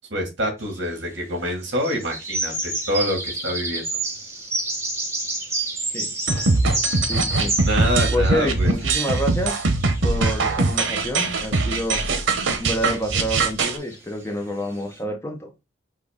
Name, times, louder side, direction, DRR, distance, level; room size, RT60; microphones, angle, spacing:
voice 1, 0.1-3.9 7.6-8.7, equal, 60° right, 2.1 m, -26 dB
sound 1, 0.6-1.1 1.7-7.9 8.3-15.0, right 2 dB, 15° right, 1.0 m, -30 dB
sound 2, 6.3-13.8, right 3 dB, 85° right, 0.9 m, -21 dB
voice 2, 7.1-7.5 8.1-9.7 10.0-12.0 12.6-15.5, equal, 15° left, 0.8 m, -28 dB
6.2 x 2.4 x 3.5 m
head